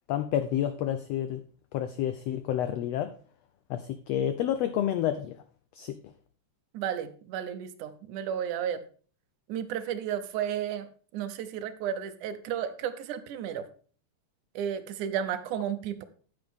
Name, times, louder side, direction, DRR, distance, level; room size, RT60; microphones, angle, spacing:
voice 1, 0.1-1.4 1.7-3.1 3.7-5.3 5.7-6.0, left 11 dB, 90° left, 10 dB, 1.4 m, -29 dB
voice 2, 6.7-8.8 9.5-13.7 14.6-16.0, right 9 dB, 80° right, 11 dB, 2.3 m, -33 dB
9.5 x 8.8 x 3.6 m, 0.41 s
omnidirectional pair, 3.6 m